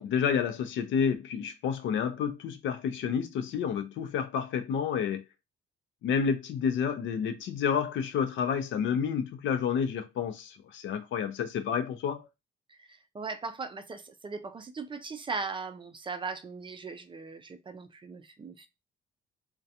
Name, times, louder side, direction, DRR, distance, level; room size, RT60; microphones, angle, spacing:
voice 1, 0.0-5.2 6.0-12.3, left 7 dB, 75° left, 0.5 m, -30 dB
voice 2, 12.7-18.7, right 4 dB, 25° right, 0.3 m, -39 dB
2.3 x 2.2 x 2.7 m
cardioid pair, 90°, 20 cm